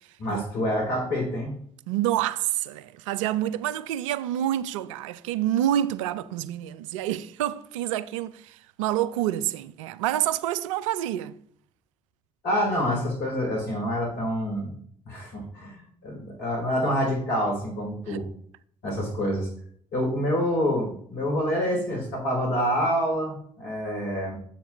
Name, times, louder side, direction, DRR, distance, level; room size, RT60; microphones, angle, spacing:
voice 1, 0.2-1.5 12.4-14.7 15.0-18.2 18.8-19.5 19.9-24.4, equal, 70° left, 3.4 m, -27 dB
voice 2, 1.9-11.3 18.1-18.2, right 12 dB, 80° right, 0.4 m, -28 dB
7.2 x 7.2 x 3.1 m
hypercardioid pair, 50°, 16 cm